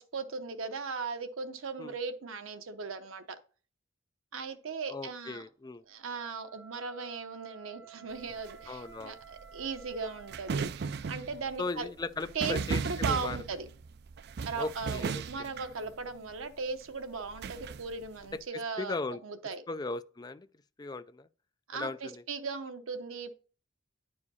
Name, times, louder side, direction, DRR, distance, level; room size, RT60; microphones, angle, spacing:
voice 1, 0.0-3.4 4.3-5.4 5.9-11.9 12.3-12.6 12.8-13.7 14.5-19.0 19.2-19.6 21.7-23.3, right 4 dB, 90° right, 0.8 m, -38 dB
voice 2, 4.9-5.8 8.7-9.2 11.6-13.4 14.6-15.2 18.8-19.2 19.7-20.5 20.8-21.3 21.7-22.2, left 3 dB, 20° left, 0.4 m, -37 dB
Wind instrument woodwind instrument, 6.0-10.6, right 7 dB, 15° right, 1.2 m, -53 dB
sound 1, 8.1-16.5 17.1-18.4, right 5 dB, 55° right, 0.4 m, -37 dB
9.6 x 4.9 x 4.1 m
head